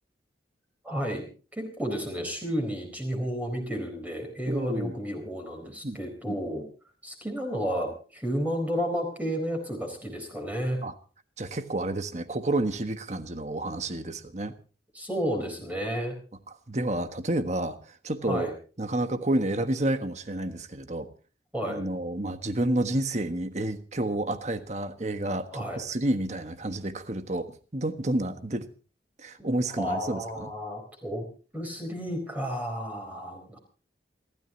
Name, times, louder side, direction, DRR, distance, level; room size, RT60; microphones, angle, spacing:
voice 1, 0.8-6.7 7.0-10.8 14.9-16.1 18.2-18.5 21.5-21.8 25.5-25.8 29.4-29.5 29.8-31.2 31.5-33.6, equal, 10° right, 3 dB, 4.1 m, -32 dB
voice 2, 4.5-4.9 5.8-6.0 6.2-6.3 10.8-10.9 11.4-14.5 16.7-18.5 18.8-21.1 21.7-27.5 27.7-28.7 29.2-30.5, right 1 dB, 40° right, 9 dB, 1.4 m, -30 dB
28.0 x 13.0 x 2.9 m, 0.37 s
head